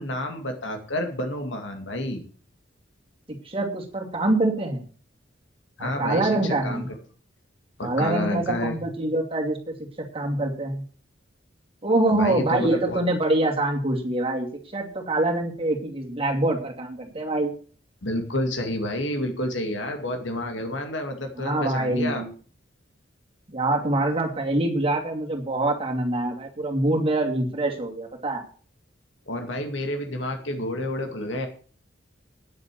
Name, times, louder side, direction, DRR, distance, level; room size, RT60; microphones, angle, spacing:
voice 1, 0.0-2.2 5.8-6.9 7.8-8.8 12.1-13.0 18.0-22.2 29.3-31.5, left 1 dB, 80° left, 4 dB, 2.3 m, -29 dB
voice 2, 3.4-4.8 5.8-6.8 7.8-9.7 10.1-10.8 11.8-14.5 14.7-17.5 21.4-22.3 23.5-28.4, right 2 dB, 30° right, 1 dB, 2.7 m, -25 dB
9.9 x 7.9 x 7.7 m, 0.42 s
head